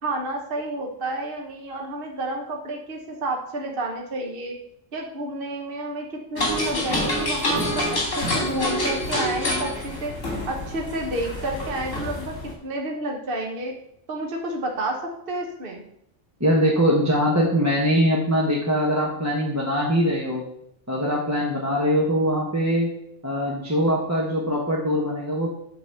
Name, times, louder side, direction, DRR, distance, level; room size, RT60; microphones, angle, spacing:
voice 1, 0.0-4.5 4.9-10.1 10.5-12.3 12.6-13.7 14.1-15.0 15.3-15.8, right 2 dB, 50° right, 1 dB, 1.3 m, -30 dB
sound 1, 6.4-12.5, left 1 dB, 80° left, 3.1 m, -27 dB
voice 2, 16.4-20.4 20.9-22.9 23.2-25.5, equal, 15° right, -4 dB, 1.2 m, -22 dB
9.1 x 4.1 x 6.8 m, 0.76 s
omnidirectional pair, 1.3 m